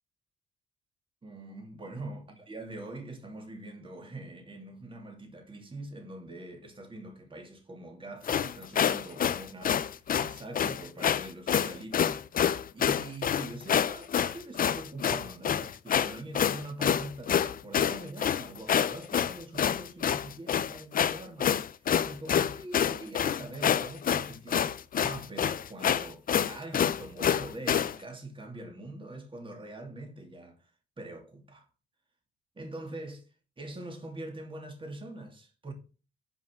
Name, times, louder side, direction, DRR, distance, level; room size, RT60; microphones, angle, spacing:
voice 1, 1.2-30.6 31.0-31.7 32.6-33.2 33.6-35.7, right 2 dB, 25° right, 2.6 m, -43 dB
sound 1, 8.2-28.0, left 8 dB, 45° left, 0.6 m, -27 dB
7.2 x 5.6 x 6.5 m
cardioid pair, 90°, 20 cm